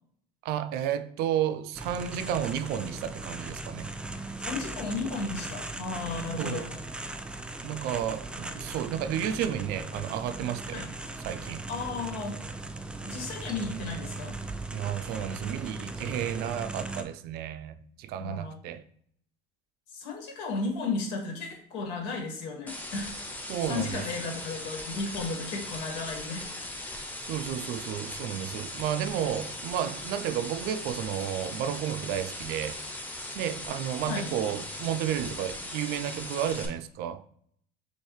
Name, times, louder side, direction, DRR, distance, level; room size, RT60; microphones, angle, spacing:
voice 1, 0.4-3.9 6.4-6.7 7.6-10.8 11.2-11.6 14.7-18.8 23.5-24.0 27.2-32.8 33.3-37.3, right 10 dB, 70° right, 0.5 m, -32 dB
sound 1, 1.7-17.0, right 2 dB, 5° right, 0.4 m, -38 dB
voice 2, 4.1-6.7 10.7-10.9 11.7-12.4 13.0-14.3 18.2-18.6 19.9-23.1 23.7-26.5 34.1-34.3, left 3 dB, 80° left, 1.8 m, -34 dB
sound 2, 22.7-36.7, left 1 dB, 10° left, 0.9 m, -39 dB
6.3 x 2.6 x 3.2 m
supercardioid pair, 105°, 17 cm